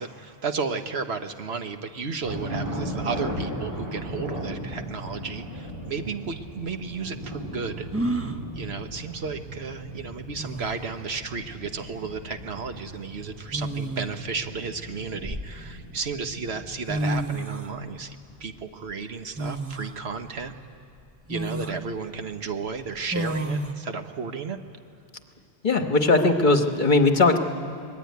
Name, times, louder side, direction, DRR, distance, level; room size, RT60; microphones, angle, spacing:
voice 1, 0.0-7.9 8.5-20.5 21.3-24.6, right 5 dB, 70° right, 7 dB, 1.3 m, -33 dB
sound 1, 2.2-17.3, right 1 dB, 35° right, 2.8 m, -37 dB
sound 2, 6.3-6.4 7.9-8.4 9.9-10.0 10.4-10.9 12.2-12.4 13.5-14.3 14.9-15.9 16.6-16.7 16.9-17.7 19.4-20.0 20.5-20.6 21.3-21.8 23.1-23.7, right 1 dB, 15° right, 0.9 m, -30 dB
voice 2, 25.6-27.4, left 3 dB, 45° left, 5 dB, 1.4 m, -19 dB
25.0 x 21.0 x 9.4 m, 2.4 s
omnidirectional pair, 1.1 m